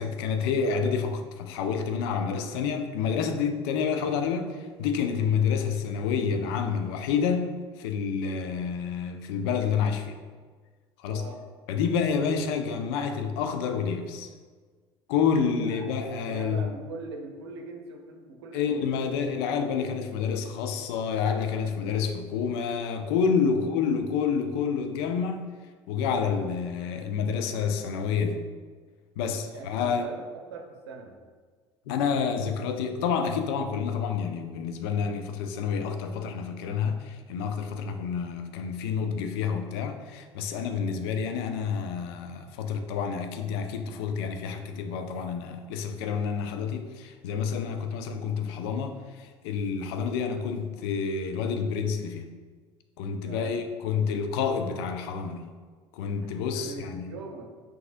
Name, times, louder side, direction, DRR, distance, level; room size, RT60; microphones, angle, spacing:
voice 1, 0.0-10.2 11.0-11.2 11.7-14.3 15.1-16.7 18.5-25.5 25.9-28.4 29.2-30.0 31.9-52.3 53.0-55.5 55.9-57.1, left 6 dB, 65° left, 0.4 m, -28 dB
voice 2, 11.1-11.4 15.5-18.9 23.5-23.7 29.2-31.2 47.6-47.9 53.2-53.6 56.2-56.3 56.5-57.5, right 3 dB, 75° right, 0.6 m, -42 dB
5.8 x 2.7 x 2.5 m
hypercardioid pair, 65°, 14 cm